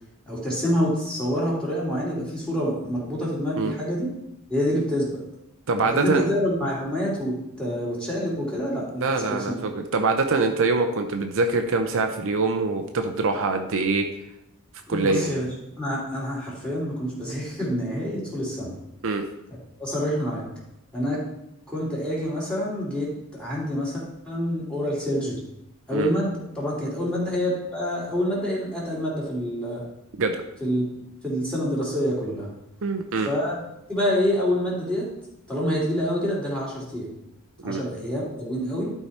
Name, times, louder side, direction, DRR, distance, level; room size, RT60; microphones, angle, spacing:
voice 1, 0.3-4.1 4.5-5.2 5.8-9.6 14.9-15.5 15.8-18.7 19.8-20.4 20.9-21.2 21.7-25.4 25.9-29.8 30.6-30.8 31.2-32.5 33.2-33.6 33.9-35.1 35.5-37.1 37.6-38.9, equal, 5° left, -5 dB, 2.9 m, -27 dB
voice 2, 5.7-6.2 9.0-14.0 14.9-15.4 19.0-19.2 25.9-26.1 30.2-30.4 32.8-33.3 37.6-37.8, right 3 dB, 60° right, 5 dB, 0.7 m, -24 dB
11.5 x 4.7 x 4.2 m, 0.81 s
head